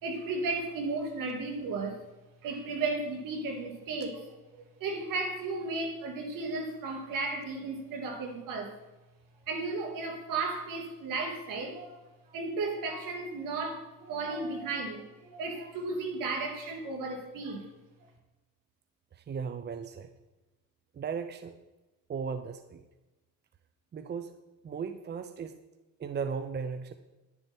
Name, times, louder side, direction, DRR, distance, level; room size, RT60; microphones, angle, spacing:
voice 1, 0.0-2.0 2.4-8.7 9.5-12.0 12.3-17.7, right 3 dB, 70° right, 3 dB, 2.8 m, -34 dB
voice 2, 19.1-20.1 20.9-21.6 22.1-22.8 23.9-24.3 24.6-25.6 26.0-26.9, right 6 dB, 30° right, 10 dB, 0.7 m, -36 dB
10.5 x 10.5 x 4.5 m, 1.1 s
cardioid pair, 110°, 34 cm